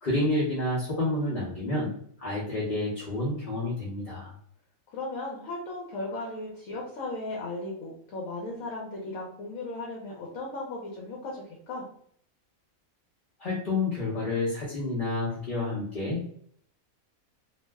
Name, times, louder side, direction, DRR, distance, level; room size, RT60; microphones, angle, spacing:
voice 1, 0.0-1.9 2.2-4.3 13.4-16.2, left 2 dB, 45° left, -6 dB, 0.8 m, -29 dB
voice 2, 4.9-11.8, left 2 dB, 75° left, -2 dB, 1.0 m, -36 dB
2.6 x 2.0 x 3.3 m, 0.64 s
omnidirectional pair, 1.5 m